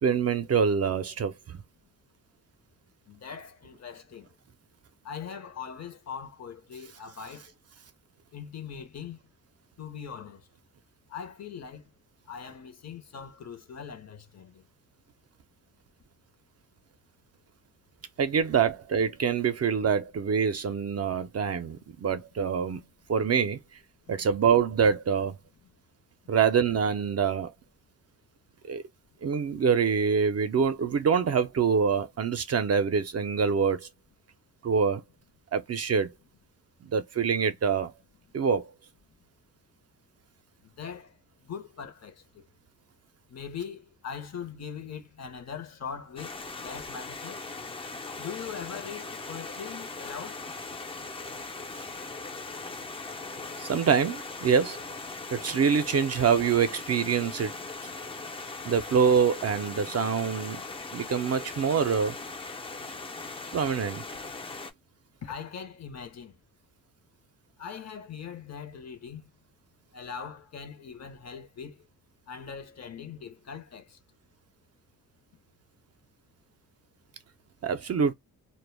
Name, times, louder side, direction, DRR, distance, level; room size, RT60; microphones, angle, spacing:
voice 1, 0.0-1.6 18.2-22.8 23.1-23.6 24.1-25.4 26.3-27.5 28.6-28.8 29.2-33.9 34.6-35.0 35.5-36.1 36.8-37.9 38.3-38.7 53.6-54.8 55.3-57.5 58.6-60.6 60.9-62.2 63.5-64.0 77.6-78.1, right 6 dB, 45° right, 0.4 m, -25 dB
voice 2, 3.1-4.3 5.0-7.5 8.3-9.2 9.8-10.4 11.1-11.9 12.3-14.6 40.8-41.1 41.4-42.4 43.3-46.3 46.6-47.4 48.2-50.4 65.2-66.3 67.6-69.3 69.9-71.8 72.3-74.0, left 7 dB, 50° left, 0.7 m, -41 dB
Stream, 46.2-64.7, left 3 dB, 15° left, 0.4 m, -39 dB
2.1 x 2.0 x 3.1 m
cardioid pair, 85°, 35 cm